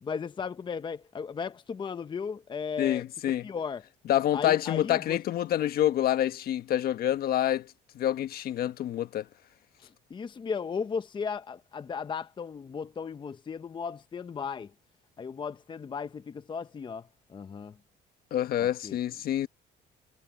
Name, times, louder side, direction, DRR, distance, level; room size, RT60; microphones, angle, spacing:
voice 1, 0.0-3.0 3.4-3.8 4.3-5.2 9.8-14.7 15.2-17.8 18.6-19.0, left 6 dB, 30° left, 0.8 m, -36 dB
voice 2, 2.8-3.4 4.1-7.7 7.9-9.2 18.3-19.5, left 12 dB, 65° left, 1.4 m, -27 dB
cardioid pair, 110°, 17 cm